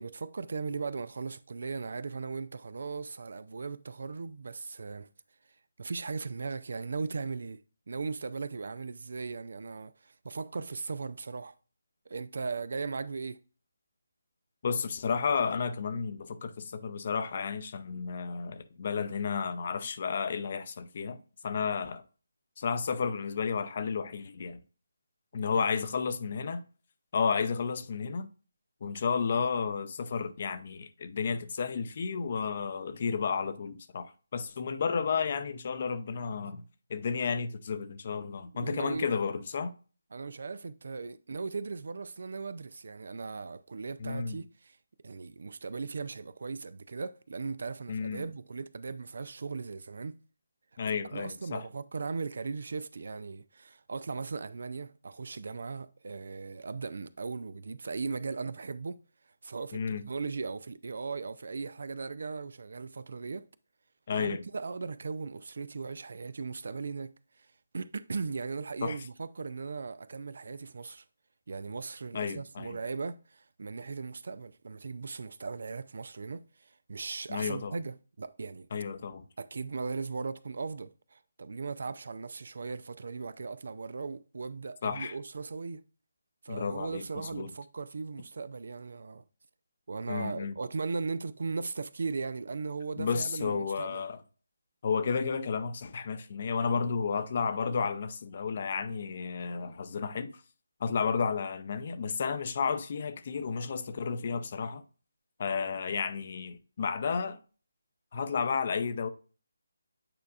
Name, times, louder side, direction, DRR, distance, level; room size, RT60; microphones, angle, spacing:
voice 1, 0.0-5.1 5.8-7.6 7.9-11.5 12.1-13.4 25.5-25.8 38.5-39.1 40.1-44.8 45.0-50.2 50.9-59.0 59.4-63.5 64.1-67.1 67.7-71.0 71.5-78.7 79.4-85.8 86.4-89.2 89.9-94.0, right 4 dB, 55° right, 0.4 m, -38 dB
voice 2, 14.6-21.2 21.4-22.0 22.6-24.6 25.3-26.6 27.1-28.3 28.8-36.6 36.9-39.7 44.0-44.4 47.9-48.3 50.8-51.6 59.7-60.0 64.1-64.4 68.8-69.0 72.1-72.8 77.3-77.8 78.7-79.2 84.8-85.2 86.5-87.5 90.1-90.5 93.0-94.2 94.8-100.3 100.8-104.8 105.4-107.4 108.1-109.1, left 5 dB, 40° left, 0.7 m, -32 dB
8.8 x 4.6 x 2.4 m
figure-of-eight pair, 150°, 0 cm